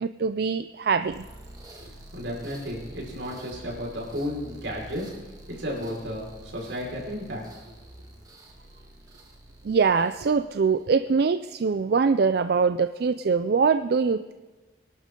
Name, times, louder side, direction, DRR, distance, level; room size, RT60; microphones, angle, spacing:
voice 1, 0.0-1.2 9.6-14.3, right 5 dB, 60° right, 11 dB, 0.4 m, -23 dB
sound 1, 1.0-11.0, right 1 dB, 20° right, 1.9 m, -47 dB
voice 2, 1.8-5.1 5.5-7.5, equal, 85° right, -2 dB, 5.0 m, -33 dB
24.5 x 11.5 x 3.8 m, 1.2 s
head